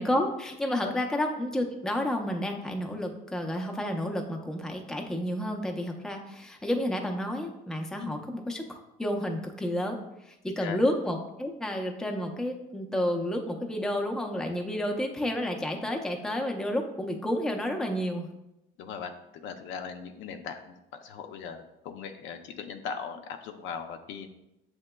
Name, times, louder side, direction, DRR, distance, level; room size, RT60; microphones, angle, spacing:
voice 1, 0.0-10.0 10.3-18.3, left 1 dB, 5° left, 2 dB, 0.5 m, -30 dB
voice 2, 18.8-24.3, left 6 dB, 70° left, 7 dB, 0.5 m, -39 dB
7.3 x 2.9 x 2.2 m, 0.90 s
cardioid pair, 120°, 20 cm